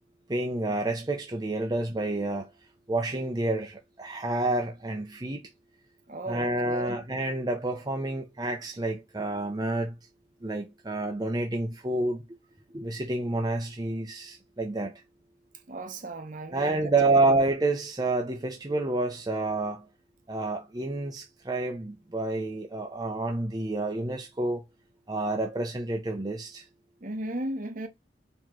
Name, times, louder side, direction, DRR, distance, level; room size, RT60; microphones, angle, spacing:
voice 1, 0.3-2.5 2.9-5.5 6.3-10.0 10.4-12.2 12.7-14.9 16.5-19.9 20.3-24.6 25.1-26.6, right 2 dB, 20° right, 0.6 m, -29 dB
voice 2, 6.1-7.0 15.7-17.3 27.0-27.9, right 1 dB, 45° right, 0.9 m, -36 dB
4.6 x 3.0 x 3.7 m
head